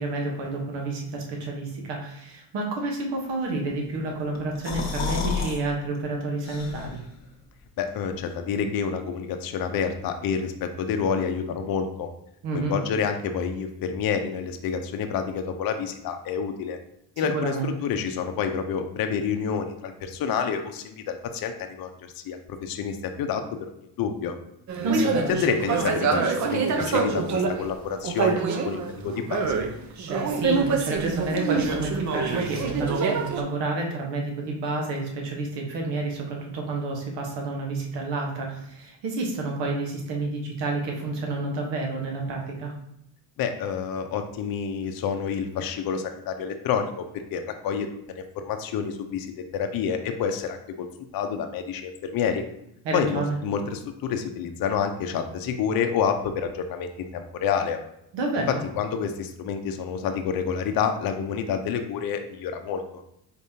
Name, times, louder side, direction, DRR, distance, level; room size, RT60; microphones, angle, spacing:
voice 1, 0.0-7.0 12.4-12.7 17.2-17.7 24.8-25.4 30.1-42.7 52.8-53.4 58.1-58.6, right 2 dB, 75° right, 0 dB, 1.3 m, -29 dB
sound 1, 4.3-5.6 5.9-6.0 6.4-7.1, left 6 dB, 40° left, 1.1 m, -30 dB
voice 2, 7.8-12.1 12.5-16.8 17.2-23.4 24.0-24.3 25.3-29.6 43.4-47.0 47.3-50.9 51.1-52.4 52.9-57.8 58.5-63.0, left 7 dB, 55° left, 6 dB, 0.6 m, -28 dB
sound 2, 24.7-27.7 28.0-29.7 30.0-33.4, right 5 dB, 45° right, 0.6 m, -25 dB
4.3 x 3.5 x 2.7 m, 0.78 s
cardioid pair, 110°, 43 cm